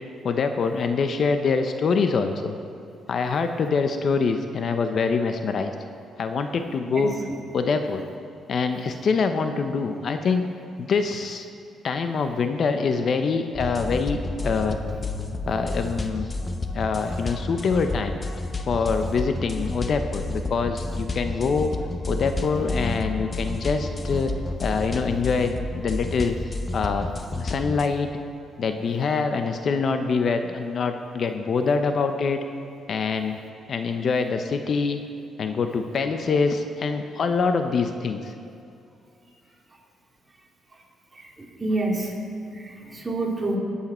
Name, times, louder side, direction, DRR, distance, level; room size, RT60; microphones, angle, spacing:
voice 1, 0.2-2.6 3.1-5.7 6.2-7.1 7.5-8.0 8.5-10.5 10.8-11.5 11.8-14.8 15.5-16.3 16.7-18.2 18.7-21.8 22.1-24.3 24.6-26.4 26.7-28.1 28.6-32.4 32.9-33.4 33.7-35.0 35.4-38.3, left 5 dB, 55° left, 7 dB, 0.8 m, -25 dB
sound 1, 13.5-27.9, left 2 dB, 30° left, 1.0 m, -30 dB
voice 2, 41.6-42.1 42.5-43.6, right 2 dB, 20° right, -3 dB, 3.2 m, -27 dB
21.0 x 8.5 x 4.4 m, 2.6 s
cardioid pair, 90°, 0 cm